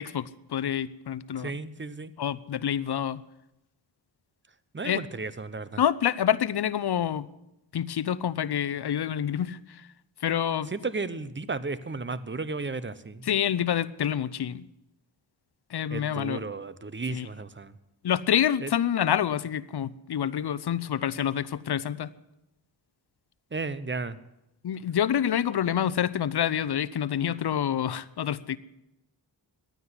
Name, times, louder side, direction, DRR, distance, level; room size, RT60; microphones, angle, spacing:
voice 1, 0.0-1.5 2.2-3.2 4.8-5.0 5.8-7.3 7.7-9.9 10.2-10.7 13.2-14.6 15.7-16.4 17.1-17.3 18.0-22.1 24.6-28.6, left 9 dB, 55° left, 17 dB, 0.7 m, -27 dB
voice 2, 1.4-2.1 4.7-5.8 10.7-13.3 15.9-17.7 18.6-18.7 23.5-24.2, right 3 dB, 25° right, 16 dB, 0.9 m, -34 dB
12.0 x 9.4 x 9.8 m, 0.89 s
cardioid pair, 45°, 46 cm